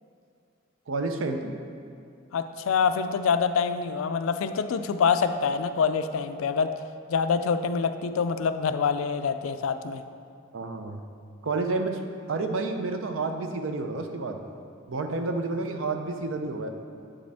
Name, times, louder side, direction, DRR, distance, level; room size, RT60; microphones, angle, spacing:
voice 1, 0.9-1.5 10.5-11.0 11.4-12.0 12.3-14.4 14.9-16.7, right 3 dB, 75° right, 5 dB, 0.6 m, -30 dB
voice 2, 2.3-6.7 7.1-10.0, left 6 dB, 85° left, 10 dB, 0.4 m, -26 dB
8.5 x 5.0 x 3.5 m, 2.5 s
head